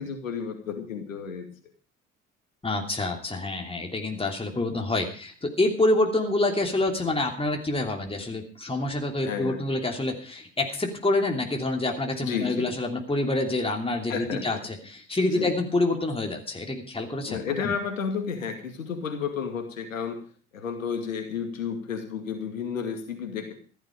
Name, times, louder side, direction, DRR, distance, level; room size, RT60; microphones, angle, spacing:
voice 1, 0.0-1.5 9.2-9.6 12.2-12.7 14.1-14.6 15.3-15.6 17.3-20.2 20.5-23.5, left 6 dB, 85° left, 5 dB, 2.3 m, -32 dB
voice 2, 2.6-17.7, left 2 dB, 15° left, 2 dB, 3.0 m, -27 dB
14.5 x 12.0 x 5.2 m, 0.40 s
figure-of-eight pair, 55°, 39 cm